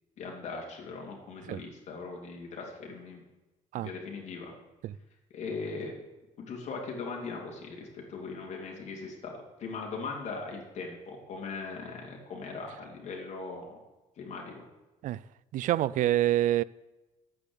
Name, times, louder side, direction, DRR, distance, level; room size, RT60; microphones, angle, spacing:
voice 1, 0.2-3.2 3.7-4.5 5.3-5.9 6.4-13.8 14.2-14.6, left 4 dB, 55° left, 3.3 m, -39 dB
voice 2, 15.5-16.6, right 13 dB, 70° right, 0.4 m, -26 dB
10.5 x 8.6 x 8.2 m
cardioid pair, 135°, 14 cm